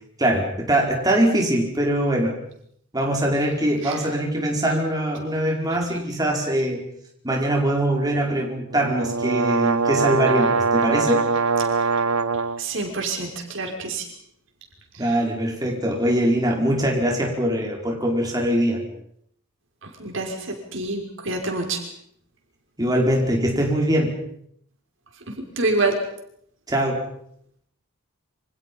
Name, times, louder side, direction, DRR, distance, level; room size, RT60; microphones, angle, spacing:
voice 1, 0.2-2.3 2.9-6.9 7.2-11.2 15.0-18.8 22.8-24.2 26.7-27.0, right 1 dB, 20° right, 0 dB, 5.1 m, -22 dB
sound 1, 8.7-12.6, right 4 dB, 80° right, 1.0 m, -22 dB
voice 2, 12.6-14.0 19.8-21.8 25.3-26.0, right 2 dB, 60° right, 3 dB, 5.9 m, -27 dB
29.0 x 26.5 x 5.6 m, 0.69 s
head